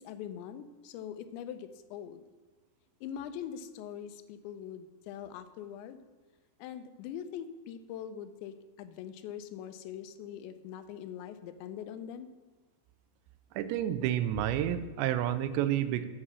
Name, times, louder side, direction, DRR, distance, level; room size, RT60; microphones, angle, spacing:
voice 1, 0.0-2.2 3.0-6.0 6.6-12.3, left 9 dB, 90° left, 10 dB, 3.0 m, -42 dB
voice 2, 13.6-16.1, right 11 dB, 85° right, 12 dB, 2.9 m, -30 dB
8.6 x 7.4 x 6.1 m, 1.4 s
omnidirectional pair, 5.1 m